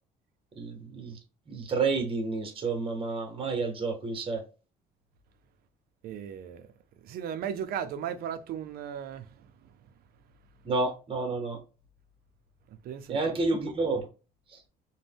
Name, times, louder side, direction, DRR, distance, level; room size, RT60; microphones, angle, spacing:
voice 1, 0.6-1.2 1.5-4.4 10.6-11.6 13.1-14.1, right 3 dB, 30° right, 0.9 m, -30 dB
voice 2, 6.0-6.7 7.0-9.7 12.8-13.4, right 8 dB, 65° right, 0.5 m, -36 dB
2.6 x 2.2 x 3.3 m
cardioid pair, 110°, 17 cm